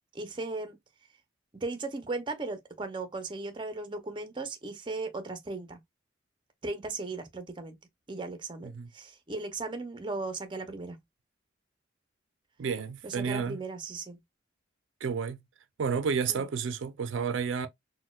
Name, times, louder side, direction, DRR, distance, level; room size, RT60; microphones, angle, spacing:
voice 1, 0.1-0.8 1.5-5.8 6.6-7.7 8.1-11.0 13.0-14.2 16.3-16.4, right 3 dB, 25° right, 0.5 m, -37 dB
voice 2, 12.6-13.6 15.0-15.4 15.8-17.7, right 6 dB, 80° right, 0.4 m, -31 dB
4.1 x 2.1 x 2.2 m
head